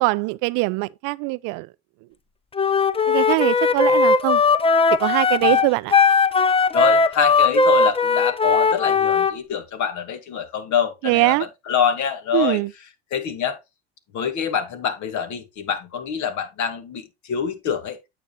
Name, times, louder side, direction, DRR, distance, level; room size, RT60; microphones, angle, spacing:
voice 1, 0.0-1.7 3.1-4.4 5.0-5.9 11.0-11.5 12.3-12.7, right 24 dB, 70° right, 0.5 m, -22 dB
Wind instrument woodwind instrument, 2.5-9.3, left 4 dB, 15° left, 0.6 m, -18 dB
voice 2, 6.7-12.6 13.1-13.6 14.1-18.0, left 7 dB, 60° left, 2.1 m, -25 dB
9.0 x 7.5 x 2.3 m
supercardioid pair, 80°, 34 cm